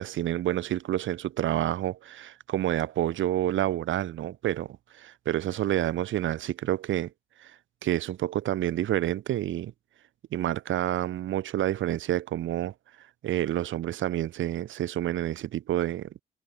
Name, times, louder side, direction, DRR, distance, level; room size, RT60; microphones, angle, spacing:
voice 1, 0.0-7.1 7.4-7.5 7.8-9.7 10.3-12.7 13.2-16.1, right 12 dB, 75° right, 3.0 m, -28 dB
cardioid pair, 90°, 20 cm